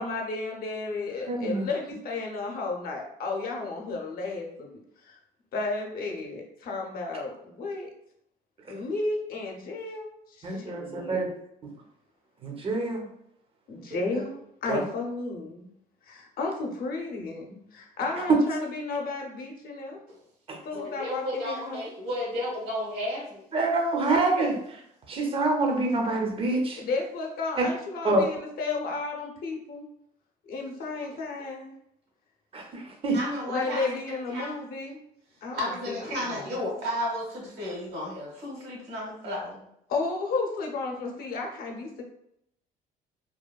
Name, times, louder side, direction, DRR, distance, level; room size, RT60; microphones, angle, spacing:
voice 1, 0.0-4.8 5.0-5.2 5.5-7.9 8.7-10.1 10.4-11.2 13.7-15.7 16.1-20.0 20.6-21.9 26.8-29.9 30.5-31.7 33.5-35.0 35.4-36.5 39.9-42.0, left 3 dB, 65° left, 1 dB, 0.7 m, -33 dB
voice 2, 1.3-1.7 10.4-11.3 12.4-13.1 13.9-14.2 14.7-14.8 20.5-20.6 23.5-24.8 25.1-26.8 28.0-28.2 32.5-33.2, right 2 dB, 35° right, 2 dB, 0.6 m, -26 dB
voice 3, 20.7-23.5 31.1-31.2 33.1-34.0 34.3-34.5 35.5-39.6, left 1 dB, 75° right, -2 dB, 1.3 m, -33 dB
2.9 x 2.2 x 2.3 m, 0.75 s
cardioid pair, 110°, 17 cm